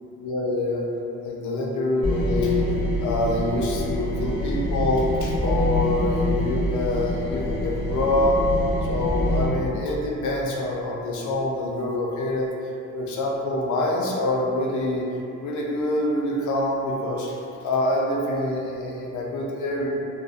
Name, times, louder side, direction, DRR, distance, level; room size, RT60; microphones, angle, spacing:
voice 1, 0.2-0.8 1.2-2.6 3.0-8.4 8.9-12.5 12.9-15.1 15.4-17.3 17.6-19.9, left 1 dB, 75° left, -2 dB, 0.5 m, -25 dB
sound 1, 2.0-9.5, left 1 dB, 20° left, 1.0 m, -26 dB
2.5 x 2.0 x 2.4 m, 2.7 s
cardioid pair, 90°, 30 cm